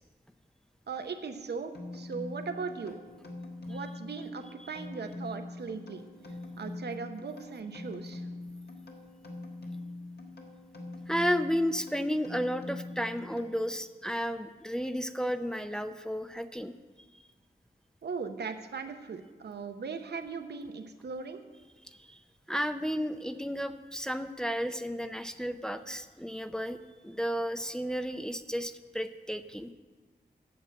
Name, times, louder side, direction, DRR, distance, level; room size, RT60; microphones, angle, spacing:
voice 1, 0.9-3.0 3.7-6.0 6.6-8.2 18.0-21.4, right 5 dB, 80° right, 7 dB, 0.8 m, -38 dB
sound 1, 1.7-13.9, left 2 dB, 70° left, 1.5 m, -43 dB
voice 2, 11.1-16.7 21.9-22.2 22.5-26.8 27.0-29.7, equal, 5° left, 8 dB, 0.5 m, -33 dB
8.9 x 6.7 x 7.6 m, 1.3 s
wide cardioid pair, 65°, 17 cm